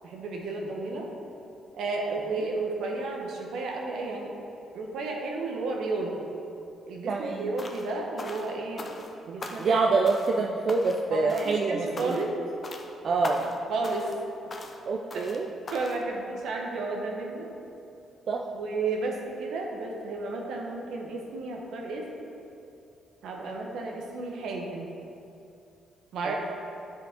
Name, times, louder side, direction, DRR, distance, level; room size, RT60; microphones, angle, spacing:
voice 1, 0.0-1.1 1.7-4.3 4.7-6.1 6.9-8.9 9.2-9.8 11.1-12.3 13.7-14.1 15.1-15.3 15.7-17.5 18.5-22.1 23.2-24.9 26.1-26.3, right 3 dB, 75° right, 0 dB, 1.2 m, -32 dB
voice 2, 7.1-7.5 9.6-12.2 13.0-13.5 14.9-15.5 18.3-18.4 26.2-26.3, right 3 dB, 55° right, 1 dB, 0.5 m, -26 dB
sound 1, 7.6-7.9 8.2-9.1 9.4-9.8 10.0-10.4 10.7-11.0 11.3-11.6 12.0-12.3 12.6-12.9 13.2-13.6 13.8-14.2 14.5-14.8 15.1-15.4 15.7-16.0, left 2 dB, 35° left, 0.7 m, -40 dB
9.8 x 5.1 x 3.7 m, 2.7 s
cardioid pair, 90°, 0 cm